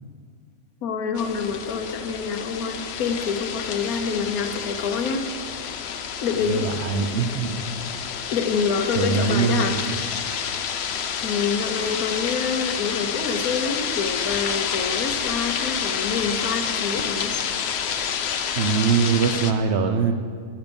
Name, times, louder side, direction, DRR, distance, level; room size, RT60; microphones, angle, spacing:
voice 1, 0.8-5.2 6.2-6.7 8.3-9.8 11.2-17.3, left 5 dB, 85° left, 6 dB, 1.3 m, -27 dB
sound 1, 1.1-19.5, left 7 dB, 60° left, 0.8 m, -29 dB
voice 2, 6.5-7.6 8.9-10.0 18.5-20.1, right 6 dB, 55° right, 7 dB, 0.9 m, -22 dB
12.0 x 8.6 x 5.2 m, 2.1 s
omnidirectional pair, 1.5 m